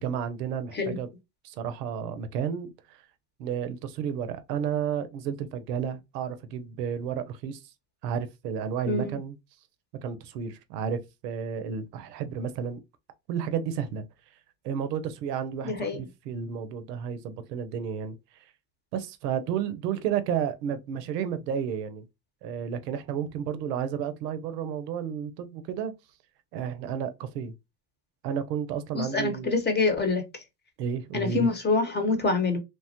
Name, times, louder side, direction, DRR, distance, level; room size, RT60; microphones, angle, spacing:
voice 1, 0.0-1.1 1.4-3.0 3.4-7.6 8.0-9.4 10.0-12.8 13.3-14.1 14.6-18.2 18.9-22.0 22.4-25.9 26.5-27.5 28.2-29.5 30.8-31.5, right 8 dB, 90° right, 0.6 m, -32 dB
voice 2, 8.9-9.2 15.6-16.0 28.9-30.2 31.1-32.6, left 3 dB, 20° left, 0.9 m, -26 dB
3.2 x 2.1 x 2.8 m
supercardioid pair, 85°, 47 cm